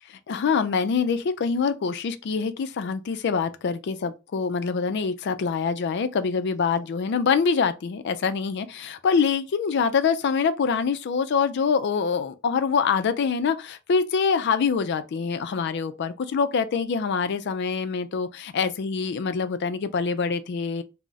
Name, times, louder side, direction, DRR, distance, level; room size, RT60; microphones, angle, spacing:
voice 1, 0.1-20.8, left 5 dB, 55° left, 0.3 m, -25 dB
2.3 x 2.0 x 3.9 m
head